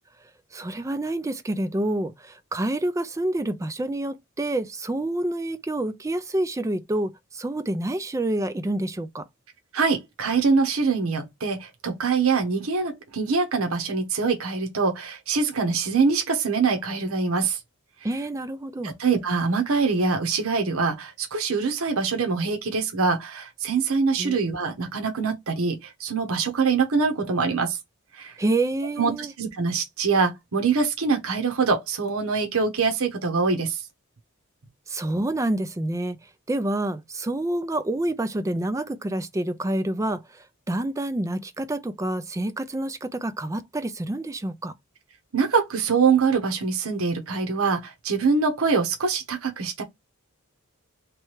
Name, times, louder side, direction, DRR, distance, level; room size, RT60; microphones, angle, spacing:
voice 1, 0.5-9.3 18.0-18.9 24.2-24.3 28.4-29.3 34.9-36.2 36.5-44.7, right 1 dB, 15° right, 0.3 m, -28 dB
voice 2, 9.7-17.6 18.8-27.8 28.1-28.4 29.0-29.1 29.4-33.8 45.3-49.8, right 4 dB, 70° right, 0.9 m, -24 dB
3.3 x 3.2 x 3.1 m
head